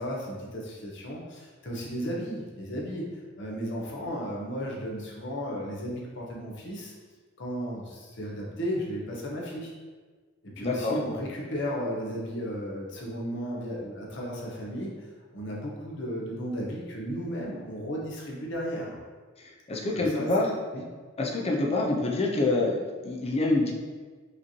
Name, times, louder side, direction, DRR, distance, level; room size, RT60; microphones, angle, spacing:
voice 1, 0.0-3.1 3.4-6.9 7.4-9.7 10.4-15.1 15.3-19.0 19.9-20.3 20.7-20.8, equal, 65° left, -3 dB, 0.8 m, -34 dB
voice 2, 10.6-11.0 19.7-20.5 21.2-23.7, left 2 dB, 30° left, -1 dB, 0.6 m, -26 dB
5.0 x 3.1 x 2.8 m, 1.4 s
head